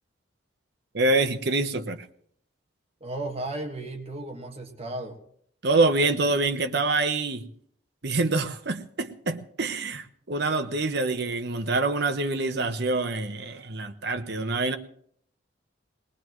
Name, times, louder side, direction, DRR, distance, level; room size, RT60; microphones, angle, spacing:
voice 1, 0.9-2.1 5.6-7.5 8.0-14.8, right 3 dB, 55° right, 1.0 m, -26 dB
voice 2, 3.0-5.2, right 2 dB, 30° right, 1.7 m, -34 dB
21.0 x 20.0 x 3.1 m
head